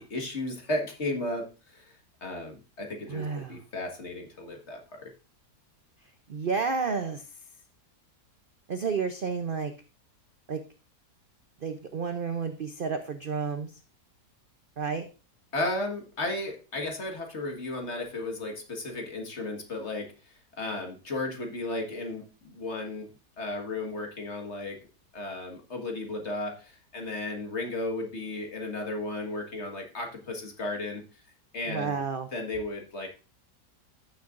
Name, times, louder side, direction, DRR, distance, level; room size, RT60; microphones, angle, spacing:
voice 1, 0.0-5.1 15.5-20.1 20.6-23.1 23.4-24.8 25.1-31.0 31.5-32.0 32.3-33.1, left 2 dB, 45° left, 3 dB, 1.9 m, -34 dB
voice 2, 3.1-3.6 6.3-7.2 8.7-9.7 10.5-10.6 11.6-13.7 14.8-15.1 31.7-32.3, right 5 dB, 50° right, 8 dB, 0.6 m, -31 dB
15.0 x 6.7 x 2.5 m, 0.32 s
omnidirectional pair, 1.7 m